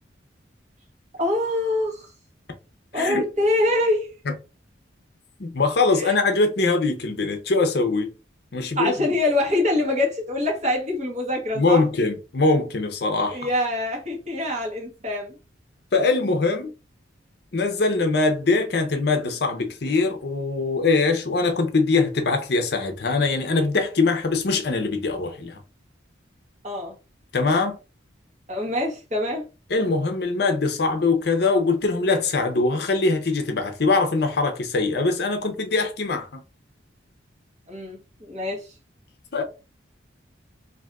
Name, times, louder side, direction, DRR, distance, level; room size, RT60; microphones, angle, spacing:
voice 1, 1.1-2.1 2.9-4.1 6.0-6.1 8.8-11.8 13.3-15.4 26.6-26.9 28.5-29.5 37.7-38.7, left 1 dB, 35° right, 1.1 m, -25 dB
voice 2, 5.4-8.1 8.5-9.1 11.5-13.5 15.9-16.7 17.5-25.6 27.3-27.8 29.7-36.4 39.3-39.4, left 3 dB, 55° left, 0.6 m, -22 dB
2.6 x 2.5 x 3.4 m
head